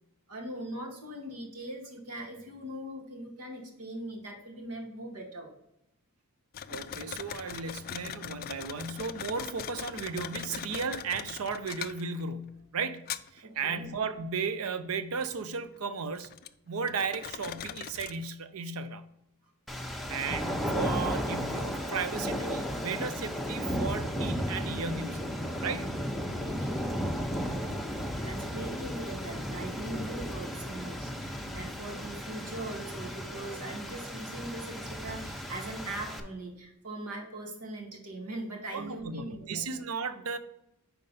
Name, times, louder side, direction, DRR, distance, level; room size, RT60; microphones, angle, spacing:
voice 1, 0.3-5.5 13.4-13.9 26.4-27.7 28.2-39.6, right 1 dB, 85° right, 1 dB, 1.7 m, -41 dB
sound 1, 6.5-12.5 13.0-13.6 14.7-14.8 15.2-16.5 16.9-18.3, left 9 dB, 40° left, 0.3 m, -41 dB
voice 2, 6.7-13.0 13.3-16.3 16.7-19.0 19.8-25.3 25.6-25.9 38.7-40.4, right 5 dB, 65° right, 12 dB, 0.6 m, -35 dB
sound 2, 19.7-36.2, equal, ahead, 0.7 m, -34 dB
5.3 x 4.5 x 5.3 m, 0.83 s
head